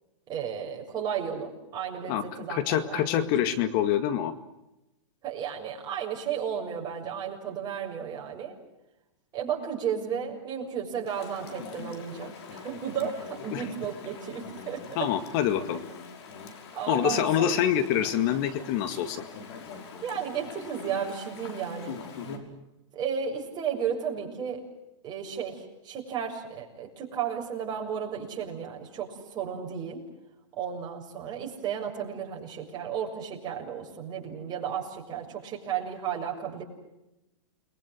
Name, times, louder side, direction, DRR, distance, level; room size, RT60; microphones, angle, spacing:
voice 1, 0.3-3.3 5.2-8.6 9.3-15.1 16.7-17.6 20.0-22.0 23.0-24.6 25.0-30.0 30.6-36.6, right 8 dB, 25° right, 0 dB, 7.0 m, -33 dB
voice 2, 2.5-4.3 13.5-13.7 15.0-15.8 16.9-19.3, left 10 dB, 45° left, 11 dB, 2.0 m, -26 dB
Chatter / Stream, 11.1-22.4, left 5 dB, 60° left, 5.9 m, -43 dB
30.0 x 22.5 x 7.8 m, 0.94 s
hypercardioid pair, 135°, 16 cm